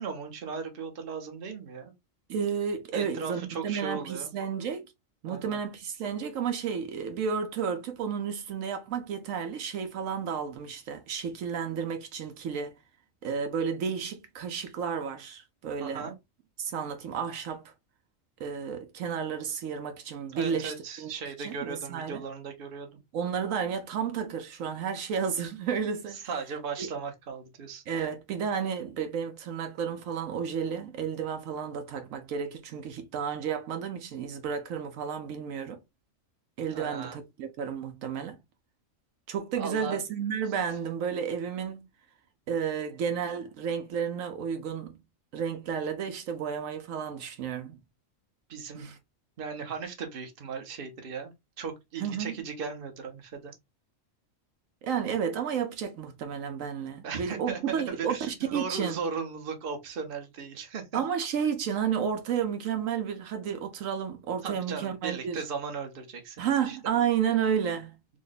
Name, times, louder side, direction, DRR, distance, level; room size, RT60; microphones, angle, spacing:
voice 1, 0.0-1.9 2.9-4.3 5.3-5.6 15.8-16.1 20.3-23.0 26.1-27.8 36.7-37.2 39.6-40.0 48.5-48.9 49.4-53.5 57.0-61.0 64.4-66.8, right 5 dB, 50° right, 1.0 m, -37 dB
voice 2, 2.3-4.9 5.2-12.8 13.2-16.1 16.6-17.7 18.4-21.1 21.4-22.2 23.1-26.2 26.8-26.9 27.9-35.8 36.6-38.4 39.3-41.9 42.5-45.0 45.3-47.8 48.7-49.0 52.0-52.3 54.8-59.0 60.9-65.4 66.4-68.0, right 7 dB, 80° right, 1.1 m, -32 dB
3.7 x 2.1 x 4.0 m
omnidirectional pair, 1.4 m